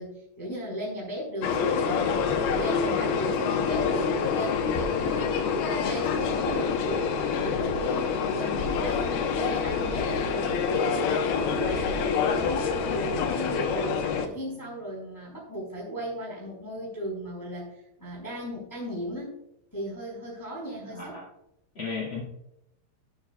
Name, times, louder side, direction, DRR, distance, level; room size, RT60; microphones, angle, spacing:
voice 1, 0.0-5.3 5.6-19.4 19.7-21.2, equal, 5° left, -3 dB, 3.4 m, -36 dB
sound 1, 1.4-14.3, left 6 dB, 75° left, 2.3 m, -27 dB
voice 2, 20.8-21.2 21.7-22.2, left 4 dB, 55° left, -2 dB, 1.4 m, -34 dB
15.5 x 9.1 x 2.3 m, 0.83 s
omnidirectional pair, 5.8 m